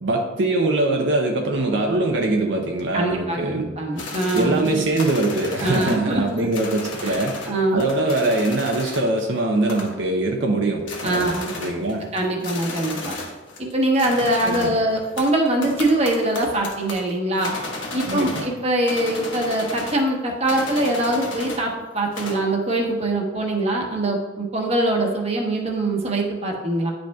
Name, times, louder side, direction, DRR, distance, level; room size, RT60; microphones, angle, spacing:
voice 1, 0.0-3.7 4.3-7.4 7.7-11.3 11.6-12.1 14.4-14.7 18.1-18.5, right 2 dB, 65° right, 1 dB, 0.6 m, -22 dB
voice 2, 2.9-4.8 5.6-6.5 7.0-7.2 7.4-7.9 11.0-11.5 12.1-13.2 13.6-17.5 17.9-26.9, right 1 dB, 35° right, 0 dB, 1.0 m, -23 dB
sound 1, 4.0-7.5 7.8-9.2 9.7-10.1 10.5-10.6 10.8-13.7 14.0-18.6 18.9-20.1 20.5-21.7 22.0-22.5, left 3 dB, 75° left, 1.2 m, -34 dB
10.0 x 5.2 x 2.3 m, 1.2 s
head